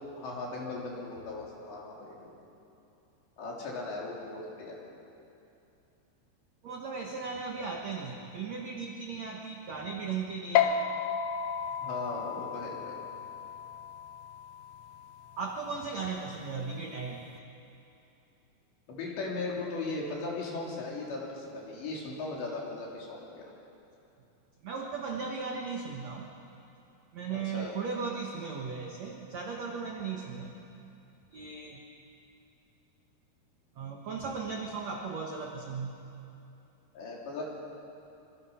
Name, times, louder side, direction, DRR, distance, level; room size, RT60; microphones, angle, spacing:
voice 1, 0.2-2.3 3.4-4.8 11.8-13.0 18.9-23.5 27.3-27.7 36.9-37.4, left 3 dB, 70° left, -3 dB, 5.8 m, -38 dB
voice 2, 6.6-10.9 15.4-17.3 24.6-26.3 27.1-30.5 31.3-31.8 33.7-35.9, right 5 dB, 70° right, 1 dB, 1.7 m, -37 dB
sound 1, 10.6-17.3, left 8 dB, 90° left, 3.3 m, -34 dB
25.0 x 25.0 x 5.7 m, 2.8 s
omnidirectional pair, 5.3 m